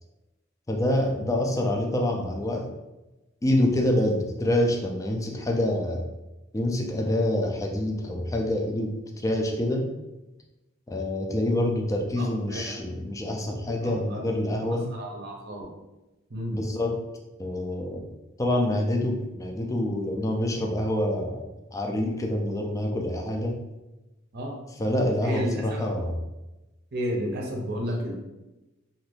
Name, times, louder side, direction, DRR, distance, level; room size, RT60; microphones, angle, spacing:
voice 1, 0.7-2.7 3.4-6.1 6.5-9.9 10.9-14.9 16.5-17.0 17.4-18.1 18.4-23.6 24.8-26.2, left 1 dB, 15° left, 2 dB, 0.4 m, -26 dB
voice 2, 12.2-12.7 13.7-14.2 14.9-15.7 16.3-16.6 24.3-24.6 25.2-25.8 26.9-28.1, equal, 55° right, -1 dB, 0.6 m, -32 dB
2.7 x 2.5 x 3.3 m, 1.0 s
head